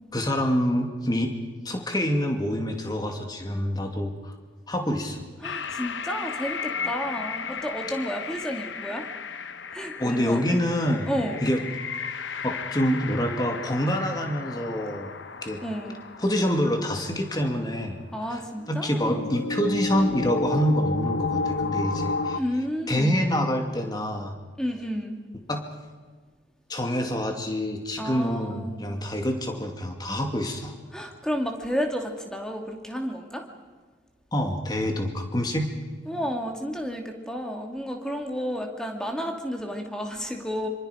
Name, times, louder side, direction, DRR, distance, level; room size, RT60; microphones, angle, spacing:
voice 1, 0.1-1.3 1.6-4.3 4.7-5.3 10.0-11.1 11.4-11.6 12.4-15.1 15.4-15.6 16.2-18.0 18.3-18.4 18.7-22.4 22.9-24.3 25.5-25.6 26.7-30.7 34.3-35.7, equal, 20° left, 4 dB, 2.4 m, -26 dB
sound 1, 5.4-17.2 17.6-17.7 18.6-22.4, left 4 dB, 70° left, 1.0 m, -33 dB
voice 2, 5.4-9.0 9.7-10.6 11.1-11.4 15.6-16.0 18.1-19.2 22.3-23.2 24.6-25.2 28.0-28.8 30.9-33.4 36.1-40.7, equal, 5° left, 2 dB, 2.5 m, -31 dB
26.0 x 26.0 x 5.1 m, 1.4 s
head